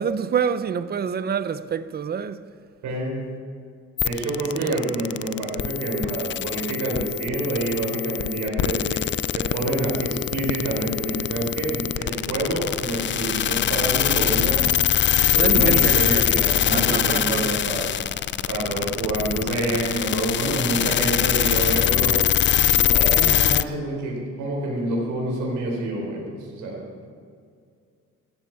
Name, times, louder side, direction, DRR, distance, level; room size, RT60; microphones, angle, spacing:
voice 1, 0.0-2.4 4.6-4.8 14.1-14.4 15.3-16.3 16.7-17.7, right 7 dB, 35° right, 0.6 m, -27 dB
voice 2, 2.8-3.2 4.0-9.0 9.3-14.7 15.4-17.9 18.5-22.2 22.7-26.8, right 2 dB, 85° right, 4.8 m, -27 dB
sound 1, 4.0-23.6, left 10 dB, 40° left, 0.4 m, -23 dB
16.5 x 14.5 x 4.9 m
cardioid pair, 125°, 29 cm